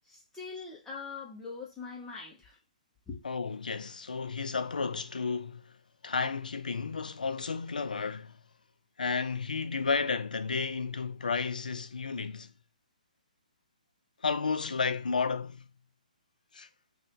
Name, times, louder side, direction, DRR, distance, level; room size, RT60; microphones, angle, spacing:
voice 1, 0.0-2.6 3.1-3.2, left 4 dB, 10° left, 0.8 m, -42 dB
voice 2, 3.2-5.8 6.0-8.4 9.0-12.5 14.2-15.6 16.5-16.7, left 5 dB, 80° left, 0.4 m, -32 dB
2.6 x 2.5 x 3.6 m
figure-of-eight pair, 130°, 4 cm